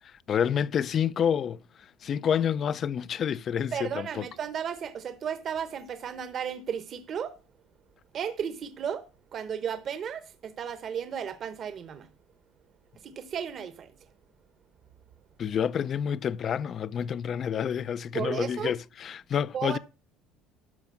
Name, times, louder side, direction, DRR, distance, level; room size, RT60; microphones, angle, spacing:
voice 1, 0.3-1.6 2.0-4.2 15.4-19.8, left 8 dB, 35° left, 0.4 m, -28 dB
voice 2, 3.7-7.4 8.1-12.1 13.0-13.9 18.1-18.7 19.5-19.8, right 8 dB, 40° right, 0.9 m, -34 dB
12.0 x 4.9 x 7.4 m
cardioid pair, 140°, 0 cm